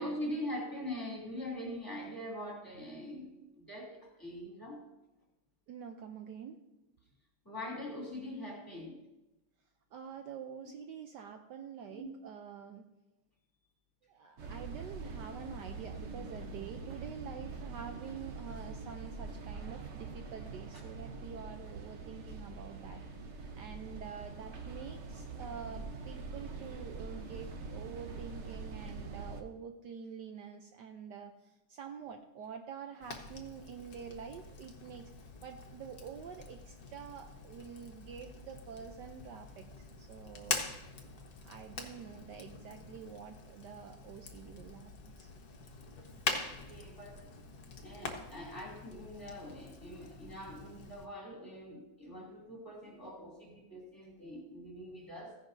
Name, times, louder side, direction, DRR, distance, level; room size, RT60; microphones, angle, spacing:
voice 1, 0.0-4.9 7.4-9.0 11.9-12.0 46.4-47.3 47.8-55.4, left 1 dB, 10° left, -2 dB, 2.7 m, -43 dB
voice 2, 5.7-6.6 9.9-12.9 14.0-23.0 23.5-35.1 35.4-40.6 41.4-45.3, right 7 dB, 70° right, 5 dB, 1.2 m, -47 dB
sound 1, 14.4-29.4, right 4 dB, 45° right, 1.0 m, -44 dB
Fire, 33.0-51.1, left 4 dB, 55° left, 1.6 m, -44 dB
15.5 x 10.5 x 2.7 m, 0.97 s
omnidirectional pair, 2.1 m